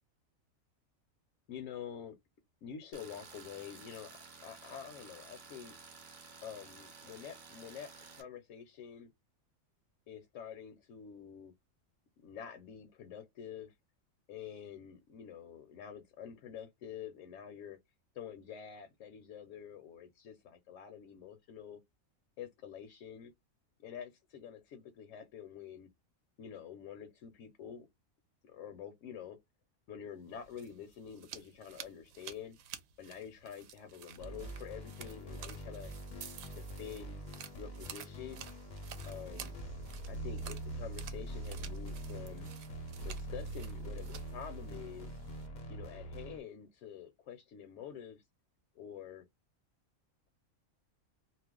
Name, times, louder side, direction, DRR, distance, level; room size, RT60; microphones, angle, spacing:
voice 1, 1.5-2.2 2.6-5.8 6.4-9.1 10.1-11.5 12.2-13.7 14.3-17.8 18.1-21.8 22.4-23.3 23.8-25.9 26.4-27.9 28.4-29.4 29.9-32.6 33.0-35.9 36.5-37.3 37.6-38.5 39.0-39.6 40.1-42.5 43.0-45.1 45.7-48.2 48.8-49.2, left 8 dB, 70° left, 0.9 m, -47 dB
Tools, 2.9-8.2, right 4 dB, 45° right, 0.7 m, -53 dB
sound 1, 30.3-45.5, right 9 dB, 75° right, 1.0 m, -52 dB
sound 2, 34.2-46.4, right 1 dB, 45° left, 0.6 m, -43 dB
2.4 x 2.1 x 3.5 m
omnidirectional pair, 1.5 m